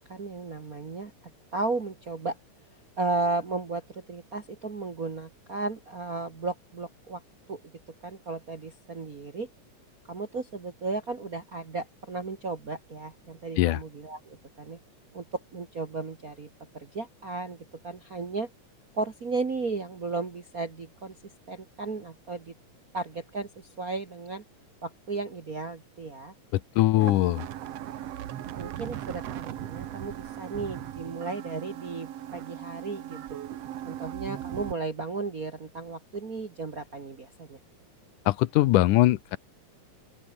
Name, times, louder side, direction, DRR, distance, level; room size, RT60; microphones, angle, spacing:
voice 1, 0.1-1.1 1.5-2.4 3.0-7.2 7.5-7.6 8.0-9.5 10.1-14.8 15.1-16.5 16.7-17.6 17.8-18.5 18.9-21.1 21.5-22.5 22.9-24.4 24.8-26.3 27.0-27.1 28.5-33.4 33.8-37.6, right 3 dB, 35° right, 1.7 m, -34 dB
voice 2, 26.5-27.5 38.3-39.4, left 16 dB, 85° left, 2.4 m, -22 dB
sound 1, 27.0-34.7, right 12 dB, 60° right, 2.0 m, -38 dB
open air
omnidirectional pair, 3.5 m